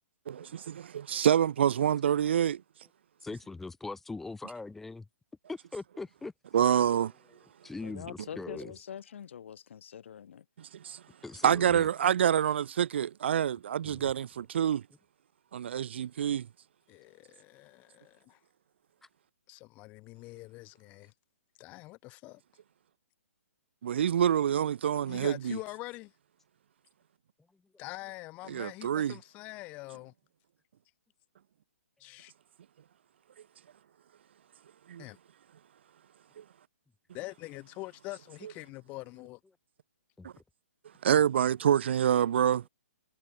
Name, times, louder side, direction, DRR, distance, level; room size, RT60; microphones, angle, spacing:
voice 1, 0.3-2.6 6.5-7.1 10.6-11.0 11.4-14.8 15.5-16.5 23.8-25.6 28.5-29.1 34.9-35.0 36.4-36.5 40.2-40.3 41.0-42.6, right 9 dB, 50° right, 0.9 m, -27 dB
voice 2, 3.2-5.1 5.5-6.3 7.6-8.7 11.2-11.9 13.8-14.0 40.2-40.3, left 3 dB, 5° left, 1.0 m, -41 dB
voice 3, 7.8-10.5, left 8 dB, 55° left, 1.6 m, -44 dB
voice 4, 16.9-18.4 19.5-21.1 21.6-22.4 25.1-26.1 27.8-30.1 32.0-32.3 35.0-35.2 37.1-39.4, left 21 dB, 20° left, 2.4 m, -44 dB
hypercardioid pair, 170°, 8 cm